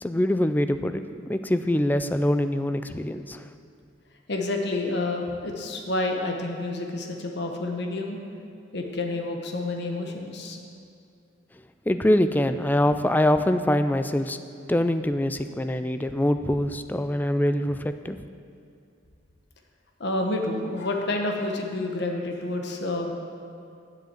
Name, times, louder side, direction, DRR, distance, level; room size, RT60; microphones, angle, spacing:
voice 1, 0.0-1.0 1.3-3.4 11.9-14.4 14.7-18.2, left 1 dB, 10° left, 10 dB, 0.3 m, -24 dB
voice 2, 4.3-8.2 8.7-10.6 20.0-23.1, left 2 dB, 60° left, 2 dB, 1.1 m, -29 dB
8.1 x 7.6 x 7.4 m, 2.5 s
head